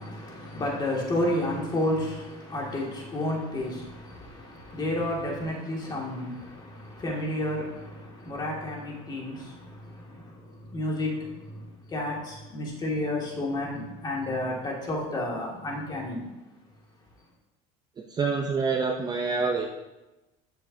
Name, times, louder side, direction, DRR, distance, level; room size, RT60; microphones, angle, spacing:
voice 1, 0.0-16.3, left 1 dB, 25° left, -2 dB, 2.2 m, -31 dB
voice 2, 18.1-19.7, right 4 dB, 20° right, 2 dB, 0.7 m, -26 dB
14.0 x 6.4 x 2.8 m, 1.0 s
cardioid pair, 140°, 18 cm